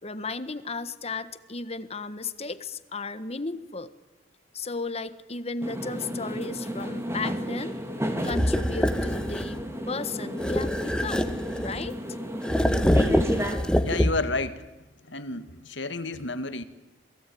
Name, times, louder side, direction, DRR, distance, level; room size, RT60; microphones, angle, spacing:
voice 1, 0.0-3.9 4.5-7.8 8.2-9.6 9.9-11.4 11.6-12.2, left 3 dB, 35° left, 12 dB, 1.4 m, -34 dB
sound 1, 5.6-13.6, equal, 15° right, 3.0 m, -32 dB
sound 2, 8.2-9.6 10.4-11.9 12.4-14.4, equal, 5° left, 1.4 m, -25 dB
voice 2, 13.8-14.6 15.1-16.6, left 3 dB, 75° left, 11 dB, 2.0 m, -31 dB
28.0 x 21.5 x 9.4 m, 1.0 s
head